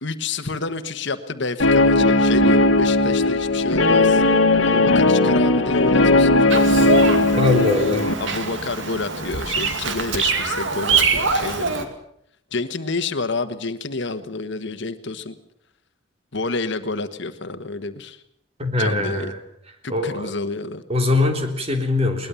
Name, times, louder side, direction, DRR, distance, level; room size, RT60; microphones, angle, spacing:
voice 1, 0.0-4.2 4.6-7.0 8.2-11.9 12.5-15.4 16.3-18.2 18.7-19.3 19.8-20.8, left 3 dB, 65° left, 10 dB, 1.4 m, -29 dB
Guitar, 1.6-8.1, left 2 dB, 85° left, 1.5 m, -17 dB
Bird vocalization bird call bird song, 6.5-11.8, right 4 dB, 70° right, 2.4 m, -24 dB
voice 2, 7.4-8.2 18.6-19.4 19.9-20.3 20.9-22.3, left 2 dB, 30° right, 4 dB, 3.3 m, -21 dB
21.5 x 19.5 x 7.1 m, 0.72 s
head